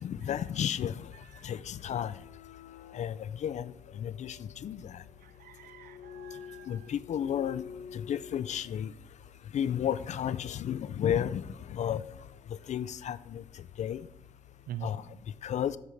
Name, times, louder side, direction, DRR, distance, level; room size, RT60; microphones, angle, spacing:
voice 1, 0.0-1.1 1.4-2.1 2.9-3.7 4.0-5.0 6.7-7.6 7.9-8.9 9.5-11.4 11.7-12.0 12.7-13.4 13.8-14.0 14.8-15.0 15.4-15.8, left 9 dB, 55° left, 15 dB, 0.4 m, -32 dB
sound 1, 1.8-8.8, left 7 dB, 80° left, 0.9 m, -49 dB
voice 2, 5.2-6.9 14.7-14.9, right 12 dB, 80° right, 14 dB, 0.5 m, -44 dB
8.3 x 5.5 x 4.5 m, 0.76 s
cardioid pair, 120°, 15 cm